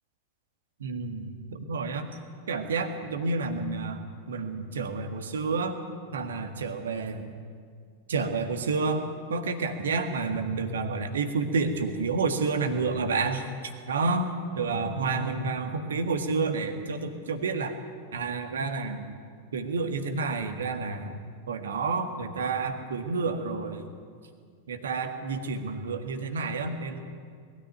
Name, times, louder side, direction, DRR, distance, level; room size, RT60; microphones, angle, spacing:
voice 1, 0.8-2.2 2.5-5.8 6.1-7.3 8.1-9.0 9.3-13.4 13.9-14.3 14.6-17.8 18.1-19.1 19.5-21.2 21.5-23.9 24.7-27.0, right 4 dB, 65° right, 8 dB, 1.8 m, -29 dB
21.0 x 13.5 x 9.4 m, 2.1 s
figure-of-eight pair, 90°, 0 cm